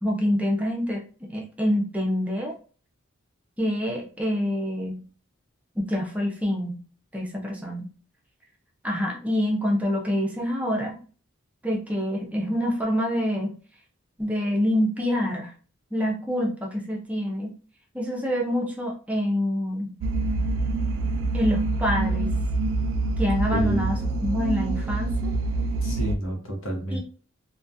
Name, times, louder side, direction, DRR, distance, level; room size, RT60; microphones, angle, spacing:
voice 1, 0.0-1.0 1.3-2.5 3.6-5.0 5.8-6.8 7.1-7.9 8.8-11.0 11.6-13.6 14.2-15.5 15.9-17.5 17.9-19.9 21.3-22.4 23.2-25.3 26.9-27.0, equal, 5° right, 0 dB, 0.4 m, -26 dB
sound 1, 20.0-26.2, right 2 dB, 80° right, 0.3 m, -26 dB
voice 2, 23.5-24.0 25.8-27.0, right 1 dB, 80° left, 1 dB, 0.8 m, -30 dB
2.3 x 2.2 x 2.6 m, 0.38 s
head